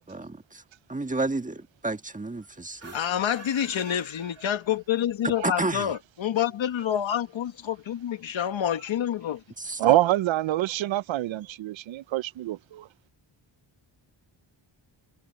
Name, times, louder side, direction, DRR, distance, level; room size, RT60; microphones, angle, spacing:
voice 1, 0.1-0.6 0.9-2.9 5.4-5.9 9.6-9.8, right 2 dB, 15° right, 1.5 m, -31 dB
sound 1, 2.7-5.0, right 3 dB, 30° right, 2.5 m, -47 dB
voice 2, 2.9-9.4, left 10 dB, 85° left, 1.5 m, -28 dB
voice 3, 9.8-12.9, right 15 dB, 85° right, 0.6 m, -25 dB
wide cardioid pair, 110°, 45 cm